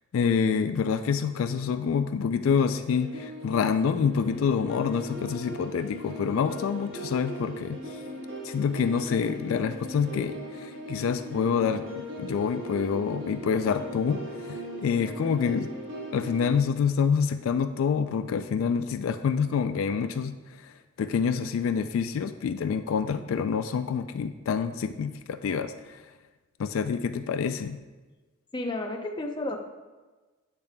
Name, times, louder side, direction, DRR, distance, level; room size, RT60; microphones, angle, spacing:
voice 1, 0.1-7.8 8.4-15.7 16.1-20.4 20.6-20.7 21.0-26.0 26.6-27.8, left 6 dB, 75° left, 9 dB, 0.3 m, -27 dB
sound 1, 2.5-16.6, equal, 60° right, 1.3 m, -39 dB
voice 2, 28.5-29.6, left 2 dB, 20° left, 2 dB, 0.6 m, -31 dB
8.1 x 6.9 x 2.2 m, 1.3 s
head